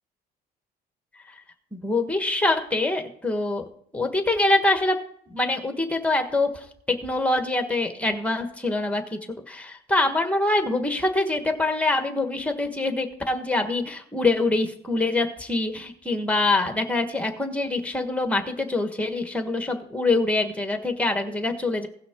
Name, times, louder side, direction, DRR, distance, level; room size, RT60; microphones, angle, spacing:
voice 1, 1.7-3.6 3.9-5.0 5.3-21.9, left 2 dB, 10° left, 6 dB, 1.4 m, -25 dB
17.0 x 5.9 x 3.7 m, 0.66 s
cardioid pair, 110°, 17 cm